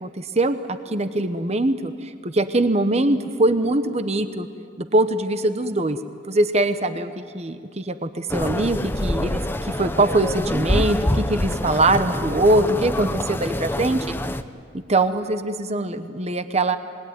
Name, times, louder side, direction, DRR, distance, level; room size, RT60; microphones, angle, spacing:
voice 1, 0.0-4.5 4.8-6.0 6.3-14.1 14.7-16.8, right 2 dB, 35° right, 10 dB, 1.0 m, -22 dB
sound 1, 8.3-14.4, left 1 dB, 10° left, 0.7 m, -26 dB
26.5 x 20.5 x 9.4 m, 2.2 s
head